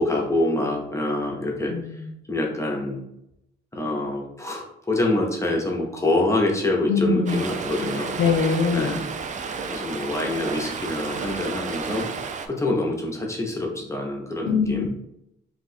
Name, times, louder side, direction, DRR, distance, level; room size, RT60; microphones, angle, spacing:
voice 1, 0.0-2.0 2.3-3.0 3.7-8.1 8.7-9.0 9.7-12.1 12.4-14.9, left 2 dB, 15° left, 0 dB, 0.7 m, -26 dB
voice 2, 1.7-2.1 6.9-7.4 8.2-9.0 14.5-14.9, left 5 dB, 85° left, 5 dB, 0.5 m, -23 dB
Stream, 7.3-12.5, right 5 dB, 40° right, 0.4 m, -31 dB
2.7 x 2.3 x 4.1 m, 0.82 s
cardioid pair, 90°, 20 cm